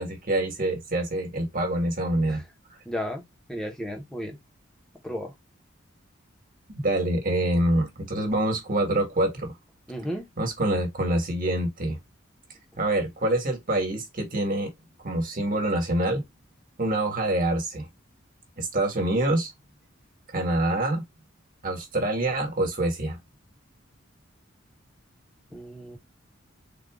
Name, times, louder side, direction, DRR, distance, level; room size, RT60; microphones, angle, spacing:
voice 1, 0.0-2.4 6.7-9.5 10.4-12.0 12.8-14.7 15.0-16.2 16.8-17.8 18.6-19.5 20.3-21.0 21.6-23.2, right 1 dB, 45° right, 1.5 m, -26 dB
voice 2, 2.8-3.2 3.5-4.4 5.0-5.3 9.9-10.3 25.5-26.0, equal, 5° left, 1.1 m, -33 dB
3.9 x 2.6 x 3.5 m
head